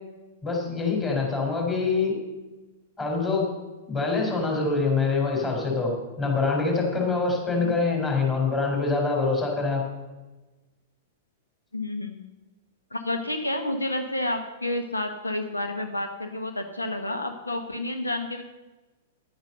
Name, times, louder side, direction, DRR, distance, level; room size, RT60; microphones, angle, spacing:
voice 1, 0.4-2.2 3.0-3.5 3.9-9.8, left 4 dB, 20° left, 0 dB, 4.2 m, -25 dB
voice 2, 11.7-12.2 12.9-18.4, left 1 dB, 80° left, 6 dB, 1.0 m, -30 dB
10.5 x 9.0 x 6.7 m, 1.2 s
figure-of-eight pair, 100°, 0 cm